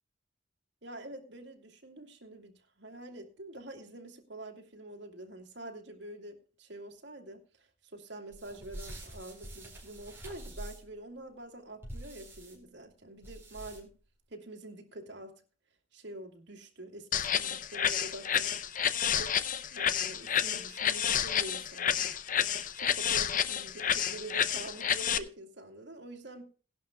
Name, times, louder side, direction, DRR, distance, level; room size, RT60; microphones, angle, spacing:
voice 1, 0.8-13.9 14.3-15.4 15.9-18.6 19.1-19.4 19.7-22.1 22.7-26.4, right 1 dB, 65° right, 2 dB, 2.5 m, -46 dB
sound 1, 8.3-11.0 11.8-12.6 13.2-14.0, right 1 dB, 15° right, 4.4 m, -46 dB
sound 2, 17.1-25.2, left 9 dB, 45° left, 0.7 m, -30 dB
18.0 x 11.5 x 2.3 m, 0.37 s
head